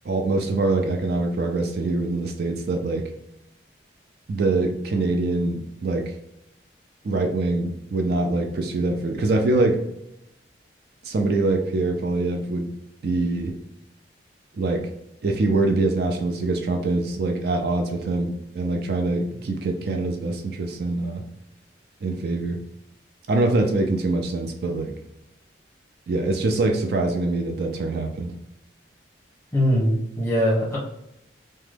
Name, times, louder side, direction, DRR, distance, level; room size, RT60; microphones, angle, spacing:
voice 1, 0.0-3.1 4.3-6.1 7.0-9.8 11.0-12.7 13.0-13.5 14.5-14.9 15.2-21.2 22.0-22.6 23.3-24.9 26.1-28.3, right 2 dB, 55° right, 3 dB, 0.4 m, -24 dB
voice 2, 29.5-30.8, equal, 15° left, -5 dB, 1.0 m, -21 dB
2.9 x 2.2 x 3.2 m, 0.83 s
head